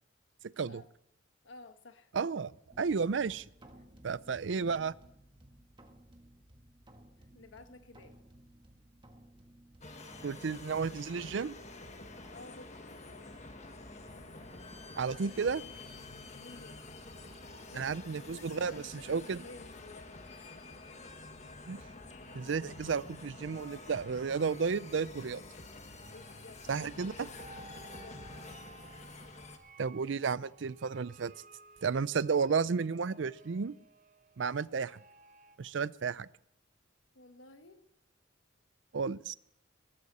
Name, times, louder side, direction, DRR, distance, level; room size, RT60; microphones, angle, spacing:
voice 1, 1.4-2.1 7.3-8.2 12.3-13.5 16.3-16.8 17.7-20.2 26.0-26.6 27.7-28.5 37.1-37.8, left 2 dB, 80° left, 8 dB, 1.3 m, -54 dB
voice 2, 2.1-3.5 4.0-4.9 10.2-11.5 15.0-15.6 17.8-19.4 21.7-21.8 22.3-25.4 26.7-27.3 29.8-31.3 31.8-33.7 34.4-35.0 35.6-36.3 38.9-39.3, right 5 dB, 70° right, 19 dB, 0.5 m, -32 dB
sound 1, 2.7-22.3, right 1 dB, 25° right, 1.6 m, -60 dB
sound 2, 9.8-29.6, left 2 dB, 35° left, 1.5 m, -48 dB
sound 3, 21.5-35.6, right 3 dB, 40° right, 1.0 m, -58 dB
20.0 x 13.0 x 4.2 m, 0.75 s
head